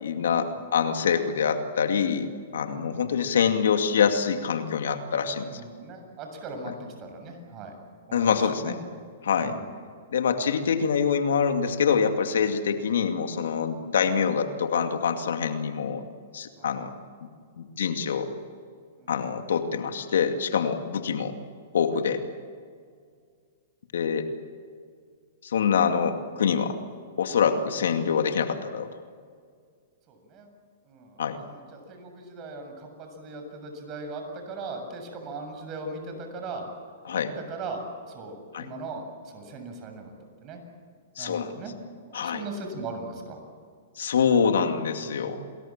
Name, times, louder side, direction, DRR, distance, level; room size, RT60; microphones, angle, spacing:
voice 1, 0.0-5.5 6.7-6.8 8.1-8.8 9.2-9.6 10.1-16.0 16.3-16.9 17.6-18.3 19.1-21.3 21.7-22.2 23.9-24.3 25.4-26.8 27.2-28.9 31.2-31.4 37.0-37.3 38.5-38.7 41.2-41.5 42.1-42.4 44.0-45.4, left 6 dB, 80° left, 6 dB, 2.4 m, -25 dB
voice 2, 2.7-3.2 5.2-8.7 9.4-9.6 16.6-16.7 19.0-19.1 30.1-30.5 30.9-36.7 37.2-40.1 40.4-40.6 41.2-41.7 42.1-43.4 45.0-45.6, right 3 dB, 35° right, 5 dB, 7.2 m, -39 dB
28.5 x 21.5 x 7.4 m, 2.1 s
hypercardioid pair, 135°, 0 cm